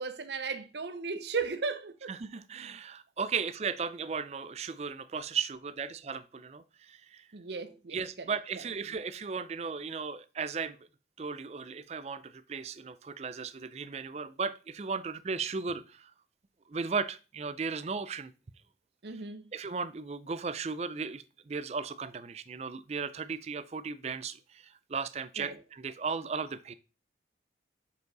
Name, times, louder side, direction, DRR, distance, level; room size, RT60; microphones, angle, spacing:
voice 1, 0.0-2.1 7.3-8.3 19.0-19.5 25.4-25.6, right 4 dB, 75° right, 0.7 m, -36 dB
voice 2, 2.1-7.3 7.9-10.8 11.2-16.1 16.7-18.3 19.5-26.7, right 5 dB, 35° right, 0.4 m, -36 dB
6.9 x 5.2 x 3.9 m
head